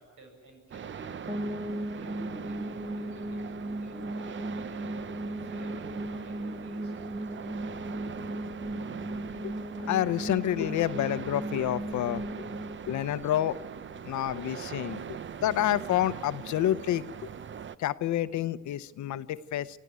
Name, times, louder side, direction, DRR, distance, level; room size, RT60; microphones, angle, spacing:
voice 1, 0.0-1.4 1.9-7.0, right 1 dB, 80° right, 2 dB, 7.9 m, -51 dB
sound 1, 0.7-17.8, right 7 dB, 40° right, 0.7 m, -41 dB
sound 2, 1.3-14.2, right 1 dB, 20° right, 1.6 m, -37 dB
voice 2, 9.9-12.4 12.9-13.6 14.0-17.3 17.8-19.8, left 12 dB, 70° left, 15 dB, 0.8 m, -29 dB
25.0 x 14.0 x 9.4 m, 1.5 s
cardioid pair, 90°, 30 cm